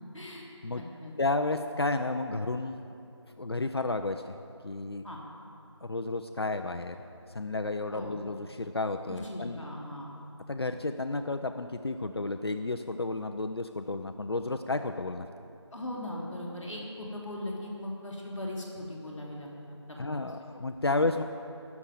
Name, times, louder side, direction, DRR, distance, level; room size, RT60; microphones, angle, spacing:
voice 1, 0.1-0.4 0.7-1.1 5.0-5.2 7.9-8.1 9.1-10.1 15.7-20.3 20.9-21.0, left 1 dB, ahead, -17 dB, 0.8 m, -39 dB
voice 2, 1.2-2.9 3.3-4.3 4.6-5.0 5.8-7.0 7.3-9.7 10.5-15.3 20.0-21.2, left 2 dB, 55° left, 7 dB, 0.6 m, -32 dB
17.5 x 7.2 x 8.9 m, 2.7 s
figure-of-eight pair, 175°, 15 cm